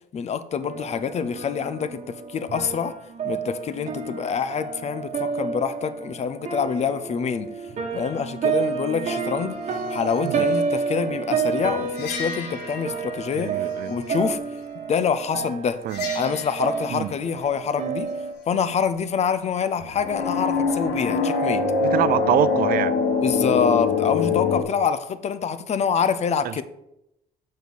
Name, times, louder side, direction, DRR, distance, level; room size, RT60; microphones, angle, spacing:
voice 1, 0.1-3.0 3.2-7.7 7.9-9.6 9.9-13.6 13.9-14.4 14.9-15.8 16.1-18.1 18.5-21.7 23.2-26.6, left 6 dB, 40° left, 0.6 m, -26 dB
sound 1, 0.6-18.3, right 5 dB, 45° right, 1.4 m, -30 dB
sound 2, 12.0-13.4 15.9-16.6 19.8-24.6, left 4 dB, 85° left, 1.2 m, -24 dB
voice 2, 13.3-13.9 15.8-16.1 16.9-17.1 21.8-23.0 26.4-26.5, right 13 dB, 60° right, 0.4 m, -25 dB
6.9 x 4.3 x 6.3 m
cardioid pair, 110°, 17 cm